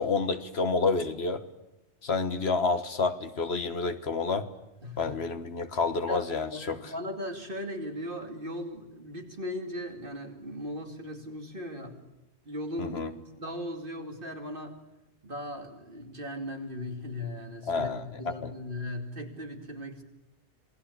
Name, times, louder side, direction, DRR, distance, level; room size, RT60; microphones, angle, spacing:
voice 1, 0.0-1.4 2.0-4.5 5.0-6.9 12.8-13.1 17.7-18.5, left 4 dB, 70° left, 10 dB, 1.7 m, -29 dB
voice 2, 4.8-5.2 6.1-12.0 12.5-14.7 15.2-20.0, left 1 dB, 50° right, 4 dB, 2.9 m, -38 dB
27.0 x 18.5 x 8.6 m, 0.97 s
omnidirectional pair, 1.1 m